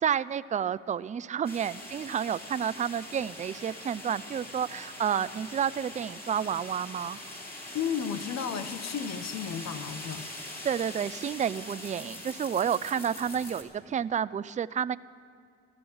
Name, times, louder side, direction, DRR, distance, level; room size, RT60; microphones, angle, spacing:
voice 1, 0.0-7.2 10.6-15.0, right 8 dB, 25° right, 16 dB, 0.3 m, -30 dB
sound 1, 1.4-13.6, left 1 dB, 30° left, 2.7 m, -43 dB
voice 2, 7.7-10.3, left 7 dB, 60° left, 10 dB, 1.1 m, -33 dB
15.0 x 12.0 x 7.1 m, 2.3 s
cardioid pair, 90°, 30 cm